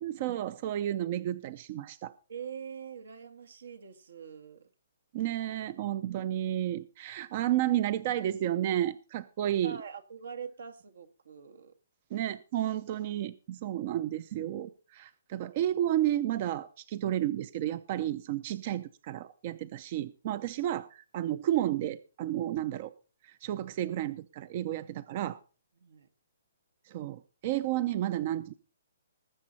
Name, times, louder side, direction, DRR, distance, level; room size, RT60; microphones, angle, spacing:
voice 1, 0.0-2.1 5.1-9.8 12.1-22.9 23.2-25.4 26.9-28.5, right 12 dB, 35° right, 0.5 m, -32 dB
voice 2, 2.3-4.7 9.6-11.7 25.8-26.1, right 7 dB, 80° right, 1.7 m, -44 dB
19.5 x 7.5 x 4.1 m
hypercardioid pair, 160°, 0 cm